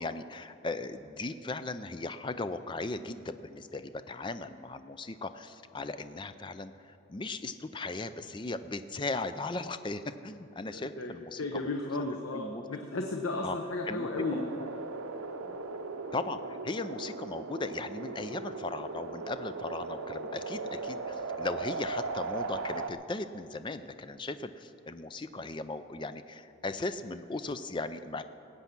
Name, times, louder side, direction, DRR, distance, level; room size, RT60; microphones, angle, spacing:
voice 1, 0.0-11.7 12.0-12.6 13.4-13.6 13.9-14.7 16.1-28.2, left 3 dB, 20° left, 11 dB, 0.4 m, -37 dB
voice 2, 10.7-14.8 15.4-15.6, left 2 dB, 75° left, 3 dB, 0.9 m, -35 dB
sound 1, 14.1-22.9, right 4 dB, 90° right, 0.7 m, -38 dB
19.0 x 8.3 x 6.0 m, 2.9 s
head